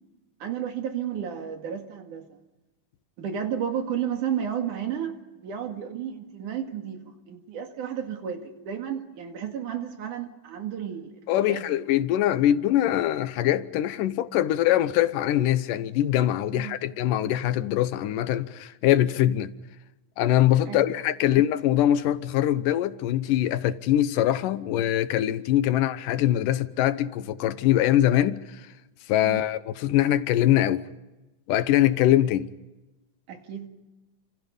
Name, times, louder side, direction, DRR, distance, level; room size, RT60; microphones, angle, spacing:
voice 1, 0.4-2.4 3.2-11.1 11.4-11.8 16.5-16.8 20.7-20.9 29.2-29.5 33.3-33.7, right 8 dB, 75° right, 3.6 m, -32 dB
voice 2, 11.3-19.5 20.2-28.7 29.1-30.9 31.5-32.5, left 12 dB, 85° left, 2.5 m, -23 dB
28.5 x 27.0 x 5.4 m
omnidirectional pair, 3.7 m